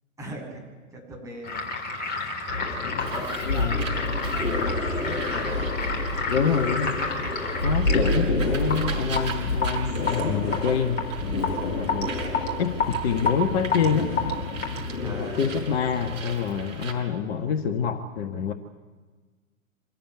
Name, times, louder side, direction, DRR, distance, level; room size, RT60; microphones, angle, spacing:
voice 1, 0.2-0.6 0.9-1.6 2.0-2.3 3.0-6.0 7.9-8.4 15.0-15.5 17.3-17.6, right 1 dB, 10° right, -2 dB, 7.8 m, -40 dB
sound 1, 1.4-15.1, left 4 dB, 25° left, 3.9 m, -30 dB
sound 2, 2.5-16.4, left 2 dB, 85° left, 1.5 m, -29 dB
Bird, 3.0-16.9, right 5 dB, 65° right, 6.4 m, -39 dB
voice 2, 3.5-3.8 6.3-7.0 7.6-12.1 12.6-14.1 15.0-18.5, left 7 dB, 50° left, 7 dB, 1.5 m, -27 dB
26.0 x 14.5 x 9.8 m, 1.4 s
figure-of-eight pair, 105°, 41 cm